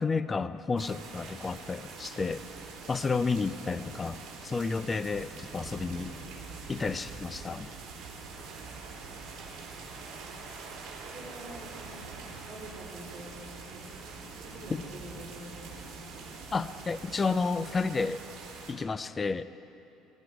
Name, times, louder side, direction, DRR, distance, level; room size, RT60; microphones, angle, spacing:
voice 1, 0.0-2.4 2.9-6.1 6.7-7.7 14.7-14.8 16.5-18.2 18.7-19.4, left 4 dB, 15° left, 14 dB, 0.3 m, -31 dB
sound 1, 0.8-18.7, right 4 dB, 50° right, 3.2 m, -44 dB
voice 2, 10.9-16.1, right 1 dB, 15° right, -5 dB, 3.2 m, -47 dB
19.5 x 14.5 x 4.9 m, 2.7 s
cardioid pair, 165°, 0 cm